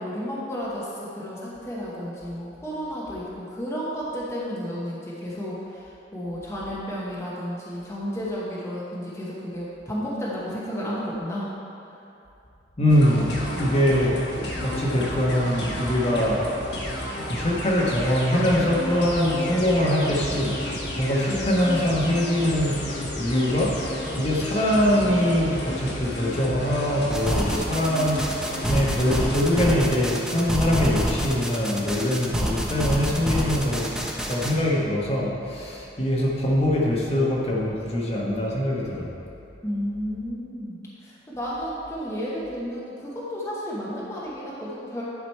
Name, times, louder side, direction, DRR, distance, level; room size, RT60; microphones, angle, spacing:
voice 1, 0.0-5.6 6.1-11.5 39.6-45.0, equal, 15° left, -7 dB, 1.1 m, -32 dB
voice 2, 12.8-14.2 14.6-16.4 17.3-20.5 21.0-22.9 23.2-23.7 24.2-28.3 28.7-33.9 34.3-39.1, left 1 dB, 35° left, -4 dB, 1.2 m, -23 dB
sound 1, 12.9-29.7, left 1 dB, 70° left, 1.2 m, -32 dB
sound 2, 27.1-34.5, equal, 5° right, 0.6 m, -27 dB
10.5 x 5.0 x 4.5 m, 2.7 s
head